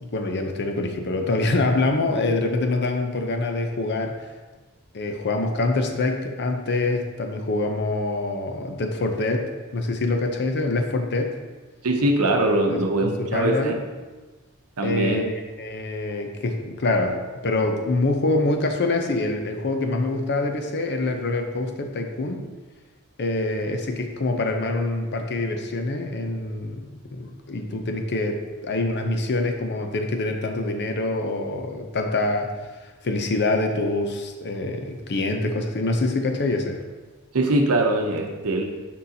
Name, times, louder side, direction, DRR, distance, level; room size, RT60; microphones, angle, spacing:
voice 1, 0.0-4.2 4.9-11.4 12.7-13.8 14.8-22.4 23.2-32.5 33.0-36.8, left 2 dB, 50° left, 4 dB, 0.6 m, -25 dB
voice 2, 11.8-13.7 14.8-15.2 37.3-38.6, right 2 dB, 80° right, 3 dB, 0.7 m, -22 dB
6.3 x 5.5 x 2.8 m, 1.3 s
head